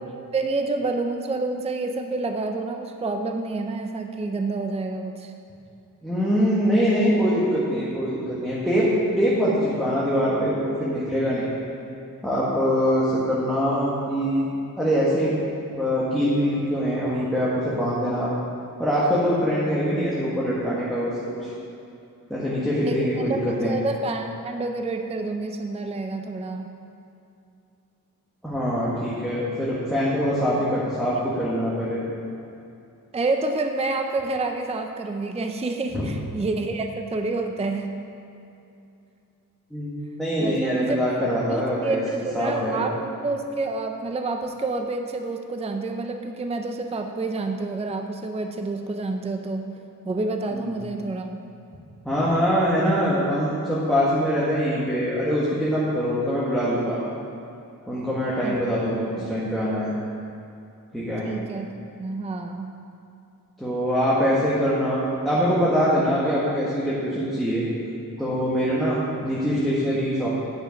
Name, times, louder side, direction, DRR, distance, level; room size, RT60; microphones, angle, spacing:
voice 1, 0.3-5.3 22.9-23.0 23.5-26.7 33.1-37.9 40.4-41.0 41.5-49.6 50.0-51.3 58.4-58.6 59.2-59.3 61.2-61.7 62.0-62.7, right 3 dB, 20° right, 5 dB, 0.4 m, -28 dB
voice 2, 6.0-8.9 9.2-11.5 12.2-14.5 14.8-15.3 15.7-18.3 18.8-21.1 21.4-21.5 22.3-23.8 28.4-32.0 35.9-36.0 39.7-39.9 40.2-42.8 50.5-50.9 52.0-57.0 57.9-59.9 60.9-61.3 63.6-67.6 68.2-70.3, equal, ahead, -8 dB, 1.4 m, -23 dB
9.1 x 6.4 x 5.1 m, 2.7 s
wide cardioid pair, 115°, 36 cm